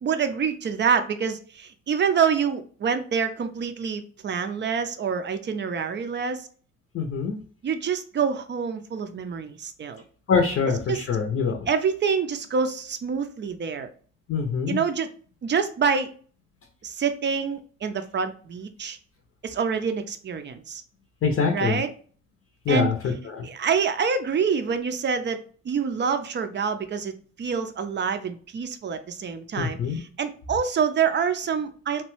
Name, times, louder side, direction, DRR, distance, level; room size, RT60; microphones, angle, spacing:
voice 1, 0.0-6.5 7.6-10.0 10.9-11.1 11.7-13.9 14.7-15.1 15.4-16.1 16.8-19.0 19.4-20.8 21.5-21.9 22.7-23.1 23.4-25.4 25.6-32.0, right 6 dB, 40° right, 9 dB, 0.5 m, -26 dB
voice 2, 6.9-7.4 10.3-11.6 14.3-14.8 21.2-21.8 22.7-23.4 29.6-30.0, left 5 dB, 50° left, 2 dB, 0.6 m, -24 dB
3.0 x 2.2 x 3.0 m, 0.42 s
cardioid pair, 90°, 30 cm